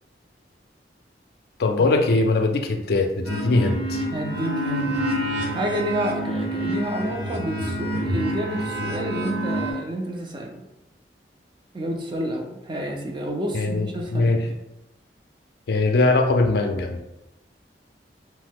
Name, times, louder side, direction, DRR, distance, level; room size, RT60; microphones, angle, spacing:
voice 1, 1.6-4.0 13.5-14.5 15.7-17.0, left 2 dB, 60° left, 4 dB, 0.4 m, -21 dB
sound 1, 3.2-9.7, right 1 dB, 65° right, 0.8 m, -27 dB
voice 2, 4.1-4.9 5.5-10.6 11.7-14.6, right 1 dB, 25° right, 1 dB, 0.4 m, -29 dB
3.0 x 2.0 x 3.5 m, 0.92 s
head